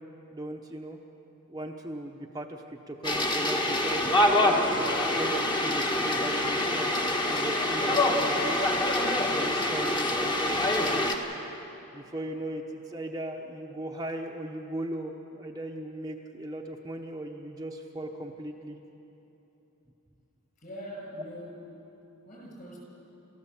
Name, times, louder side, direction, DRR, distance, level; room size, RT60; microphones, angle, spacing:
voice 1, 0.3-1.0 1.5-4.2 4.5-6.9 7.2-8.6 9.3-11.1 11.9-18.8 21.1-21.2, right 1 dB, 20° right, 1 dB, 0.9 m, -38 dB
sound 1, 3.0-11.1, left 1 dB, 20° left, 1.5 m, -26 dB
voice 2, 20.6-21.6 22.3-22.8, equal, 40° left, -2 dB, 7.1 m, -42 dB
29.0 x 14.5 x 7.2 m, 3.0 s
head